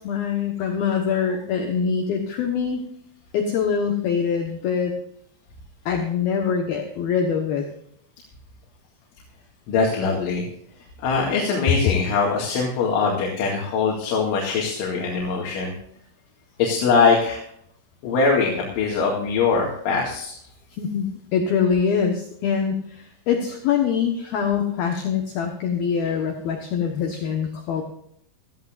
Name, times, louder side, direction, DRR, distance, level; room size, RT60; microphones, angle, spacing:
voice 1, 0.0-2.8 3.3-4.9 5.9-7.7 20.8-27.8, left 6 dB, 65° left, 3 dB, 2.6 m, -24 dB
voice 2, 9.7-10.4 11.0-15.7 16.6-17.4 18.0-20.4, left 4 dB, 85° left, -2 dB, 4.5 m, -22 dB
18.0 x 14.0 x 2.5 m, 0.69 s
omnidirectional pair, 5.4 m